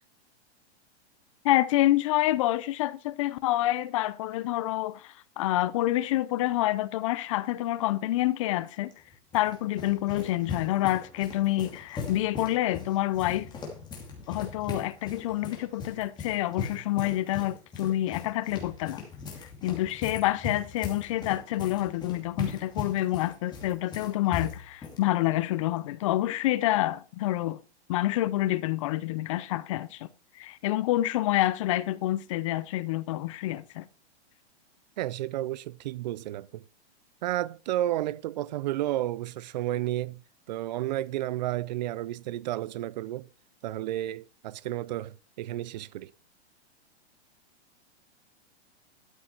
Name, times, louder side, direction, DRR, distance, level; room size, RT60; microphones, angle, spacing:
voice 1, 1.4-8.9 9.3-13.5 14.3-19.0 19.6-27.6 27.9-30.1 30.4-33.8, left 15 dB, 30° left, 0.5 m, -27 dB
sound 1, 8.9-25.0, left 5 dB, 15° left, 2.5 m, -39 dB
voice 2, 35.0-36.6 37.2-40.2 40.5-43.3 43.6-46.1, right 14 dB, 40° right, 0.5 m, -32 dB
12.5 x 6.8 x 4.5 m
supercardioid pair, 165°, 34 cm